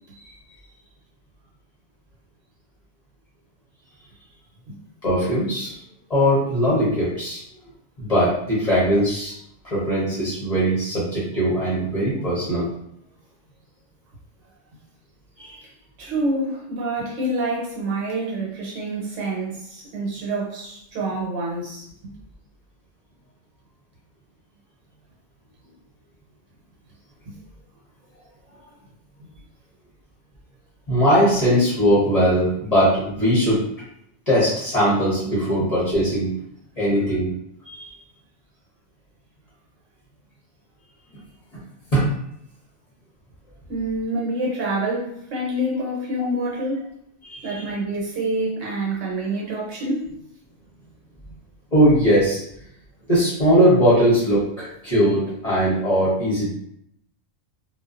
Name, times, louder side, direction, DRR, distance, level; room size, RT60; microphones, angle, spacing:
voice 1, 5.0-5.7 6.1-7.4 8.0-9.3 9.6-12.7 15.4-15.6 30.9-33.6 34.3-36.3 36.8-37.3 37.6-37.9 41.9-42.1 47.2-47.6 51.7-52.4 53.1-56.5, equal, 35° left, -8 dB, 0.7 m, -20 dB
voice 2, 16.0-21.9 27.3-27.4 35.6-35.7 43.7-46.9 47.4-50.1, right 1 dB, 75° right, -3 dB, 1.1 m, -27 dB
2.4 x 2.1 x 2.3 m, 0.73 s
omnidirectional pair, 1.4 m